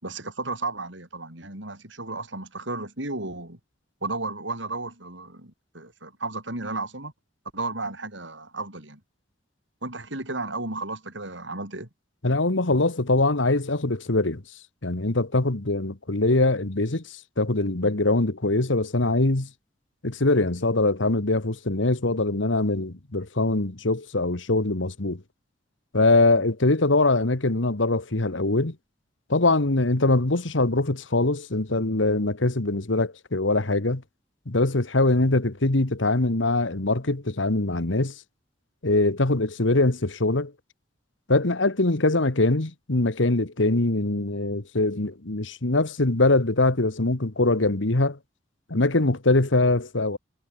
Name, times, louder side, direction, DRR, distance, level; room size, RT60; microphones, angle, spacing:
voice 1, 0.0-3.6 4.0-7.1 7.5-9.0 9.8-11.9, right 2 dB, 75° right, 7.7 m, -33 dB
voice 2, 12.2-14.4 14.8-17.0 17.4-19.5 20.0-25.2 25.9-28.7 29.3-34.0 34.5-38.1 38.8-40.5 41.3-48.2 48.7-50.2, left 2 dB, 85° left, 1.7 m, -23 dB
head